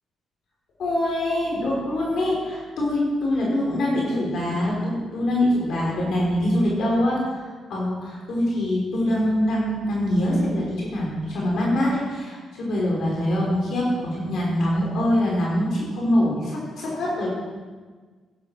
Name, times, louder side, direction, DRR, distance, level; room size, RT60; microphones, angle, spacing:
voice 1, 0.8-17.3, left 1 dB, 65° left, -4 dB, 3.5 m, -24 dB
11.0 x 10.5 x 4.5 m, 1.4 s
cardioid pair, 90°, 0 cm